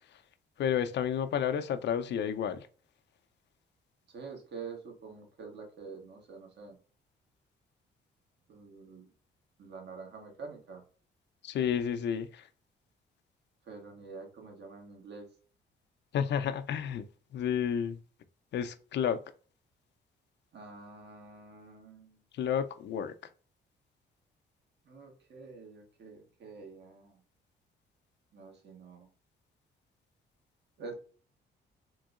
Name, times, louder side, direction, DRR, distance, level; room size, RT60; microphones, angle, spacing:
voice 1, 0.6-2.7 11.4-12.5 16.1-17.0 17.3-18.0 18.5-19.2 22.3-23.1, left 8 dB, 60° left, 0.5 m, -31 dB
voice 2, 4.1-6.8 8.5-9.1 9.6-10.8 13.6-15.3 20.5-22.2 24.8-27.2 28.3-29.1 30.8-30.9, right 4 dB, 60° right, 1.3 m, -47 dB
3.7 x 2.6 x 2.4 m
cardioid pair, 90°, 20 cm